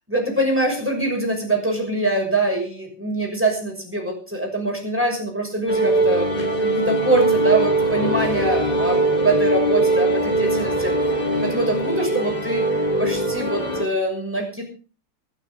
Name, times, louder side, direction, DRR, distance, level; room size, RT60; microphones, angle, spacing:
voice 1, 0.1-6.3 6.6-10.9 11.4-12.7 13.0-14.6, right 2 dB, 5° right, 1 dB, 6.1 m, -24 dB
sound 1, 5.7-13.8, right 2 dB, 20° left, 2.7 m, -21 dB
26.0 x 9.3 x 3.7 m, 0.36 s
omnidirectional pair, 2.3 m